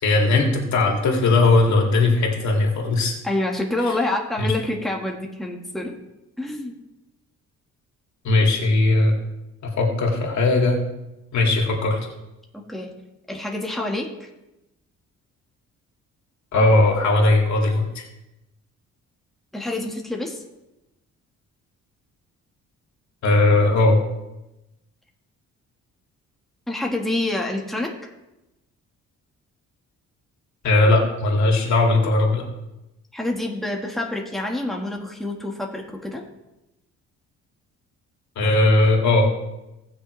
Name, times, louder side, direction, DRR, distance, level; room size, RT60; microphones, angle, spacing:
voice 1, 0.0-3.1 4.4-4.5 8.2-9.1 9.6-10.8 11.3-12.0 16.5-18.0 23.2-24.0 30.6-32.4 38.4-39.3, left 2 dB, 65° left, 0 dB, 2.7 m, -18 dB
voice 2, 3.2-6.0 6.4-6.8 12.5-12.9 13.3-14.3 19.5-20.4 26.7-28.1 33.1-36.2, left 1 dB, ahead, 0 dB, 1.6 m, -27 dB
18.0 x 6.6 x 3.3 m, 0.96 s
cardioid pair, 90°, 30 cm